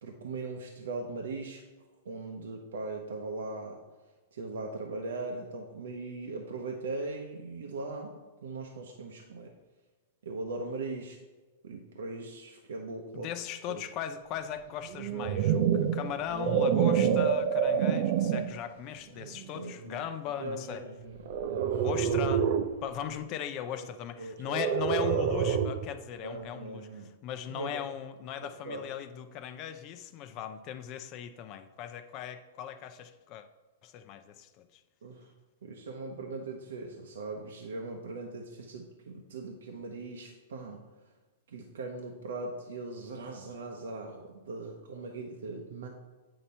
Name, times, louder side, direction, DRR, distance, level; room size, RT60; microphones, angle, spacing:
voice 1, 0.0-1.6 2.0-3.8 4.3-8.1 8.4-9.5 10.2-11.2 11.6-13.3 13.7-13.8 19.5-20.0 20.4-21.8 23.8-23.9 24.2-24.6 26.2-27.1 27.5-27.8 28.4-28.8 35.0-35.3 35.6-40.8 41.5-45.9, right 3 dB, 80° right, 1 dB, 0.8 m, -40 dB
voice 2, 13.1-20.8 21.8-22.5 22.8-33.5 33.8-34.7, left 9 dB, 40° left, 9 dB, 0.6 m, -38 dB
sound 1, 14.9-18.6 19.2-19.5 21.3-22.8 24.5-25.9, right 8 dB, 55° right, 0.5 m, -27 dB
8.6 x 2.9 x 5.4 m, 1.2 s
hypercardioid pair, 135°, 0 cm